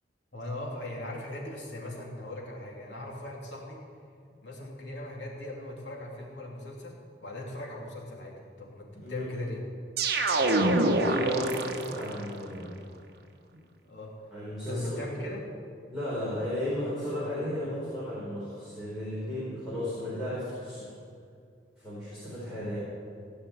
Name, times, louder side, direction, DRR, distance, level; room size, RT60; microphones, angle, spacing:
voice 1, 0.3-3.8 4.4-9.6 10.4-11.1 13.9-14.1 14.7-15.5, left 1 dB, 75° left, -2 dB, 2.9 m, -39 dB
voice 2, 9.0-9.3 10.5-12.7 14.3-15.1 15.9-20.8 21.8-22.8, equal, ahead, -11 dB, 4.4 m, -34 dB
sound 1, 10.0-12.2, right 2 dB, 55° right, 1.1 m, -26 dB
17.0 x 5.7 x 9.3 m, 2.3 s
head